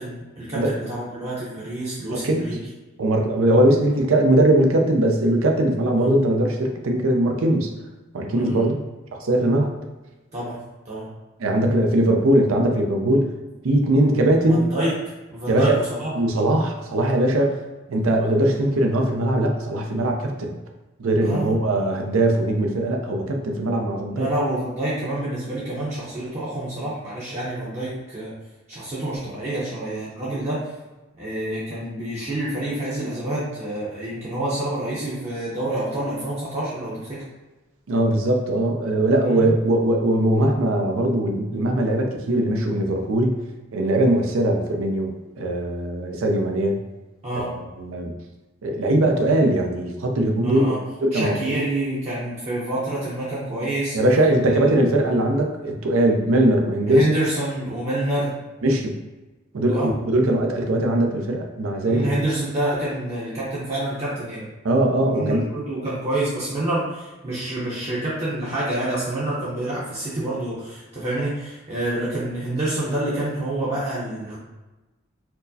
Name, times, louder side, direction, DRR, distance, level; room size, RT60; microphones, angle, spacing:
voice 1, 0.0-2.6 6.0-6.1 8.3-8.8 10.3-10.6 10.8-11.1 14.5-14.9 15.3-16.1 17.4-17.5 21.2-21.6 24.1-28.3 28.7-30.7 31.2-37.2 39.2-39.6 47.2-47.5 50.4-50.8 51.1-54.0 54.5-54.7 56.9-58.4 59.7-59.9 61.8-64.5 65.0-74.4, right 1 dB, 30° right, -8 dB, 0.6 m, -27 dB
voice 2, 2.1-2.5 3.0-7.7 8.1-8.7 9.1-9.8 11.4-13.3 13.6-14.7 15.5-15.8 16.2-20.5 21.0-24.3 37.9-43.4 43.7-46.8 47.4-48.1 48.6-51.6 53.9-57.1 58.6-58.9 59.5-62.1 64.6-65.4, right 1 dB, 85° right, 3 dB, 0.5 m, -20 dB
4.4 x 2.0 x 2.7 m, 1.1 s
head